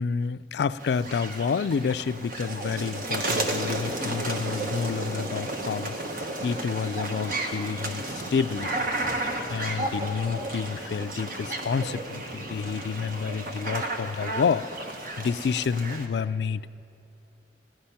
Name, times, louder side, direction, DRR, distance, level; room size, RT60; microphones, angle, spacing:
voice 1, 0.0-8.9 9.5-14.6 15.2-16.7, left 6 dB, 70° left, 15 dB, 0.3 m, -29 dB
sound 1, 0.8-16.1, right 2 dB, 55° right, 1.2 m, -32 dB
17.5 x 11.5 x 5.7 m, 2.8 s
head